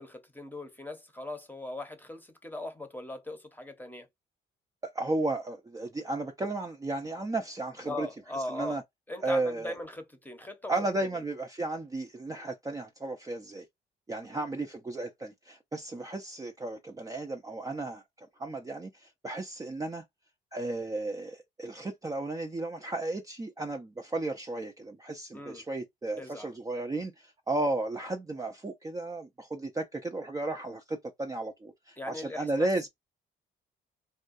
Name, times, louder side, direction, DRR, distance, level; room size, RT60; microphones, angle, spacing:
voice 1, 0.0-4.1 7.8-8.8 9.1-10.7 14.2-14.4 25.3-25.6 26.2-26.5 32.0-32.7, left 2 dB, 10° left, 0.8 m, -40 dB
voice 2, 4.8-8.1 8.5-8.8 9.2-9.7 10.7-13.6 14.1-18.0 18.4-20.0 20.5-32.9, right 2 dB, 15° right, 0.5 m, -34 dB
3.5 x 2.2 x 2.5 m
cardioid pair, 90°, 20 cm